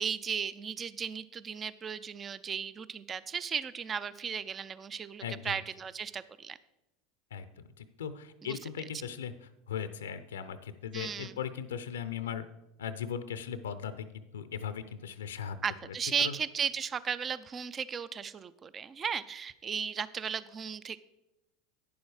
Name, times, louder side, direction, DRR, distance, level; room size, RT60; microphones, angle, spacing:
voice 1, 0.0-6.6 8.4-8.6 10.9-11.4 15.6-21.1, right 7 dB, 30° right, 16 dB, 0.4 m, -35 dB
voice 2, 5.2-5.6 7.3-9.3 9.7-12.4 12.8-14.1 14.3-15.6 16.2-16.4, left 8 dB, 85° left, 12 dB, 0.5 m, -38 dB
9.5 x 7.1 x 4.8 m, 0.93 s
hypercardioid pair, 90°, 0 cm